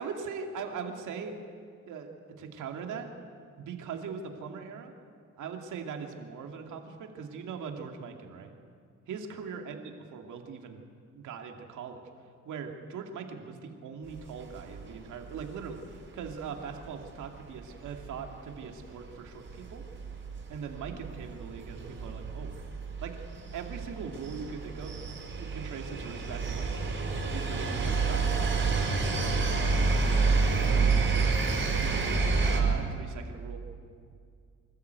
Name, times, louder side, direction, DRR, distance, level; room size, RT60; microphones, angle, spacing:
voice 1, 0.0-1.4 1.9-3.1 3.6-4.9 5.4-8.5 9.1-9.8 10.1-10.8 11.1-12.0 12.5-19.8 20.5-22.5 23.0-23.2 23.5-25.0 25.4-31.5 31.8-33.6, right 6 dB, 80° right, 3 dB, 2.4 m, -41 dB
sound 1, 14.2-15.0 15.3-15.4 15.8-15.9 16.1-16.3 17.2-17.5 17.8-18.3 18.8-18.9 19.3-32.6, right 4 dB, 40° right, 5.3 m, -29 dB
25.5 x 14.0 x 8.2 m, 2.2 s
cardioid pair, 90°, 30 cm